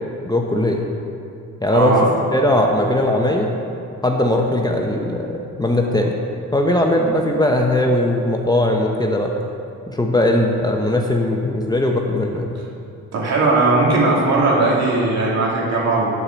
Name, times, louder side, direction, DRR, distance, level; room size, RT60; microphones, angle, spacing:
voice 1, 0.2-0.8 1.6-1.9 2.3-3.5 4.0-6.2 6.5-9.3 9.9-12.6, left 1 dB, 15° left, 1 dB, 0.9 m, -19 dB
voice 2, 1.7-2.1 13.1-16.1, right 2 dB, 60° right, -4 dB, 2.6 m, -18 dB
9.6 x 4.9 x 7.4 m, 2.6 s
cardioid pair, 90°, 30 cm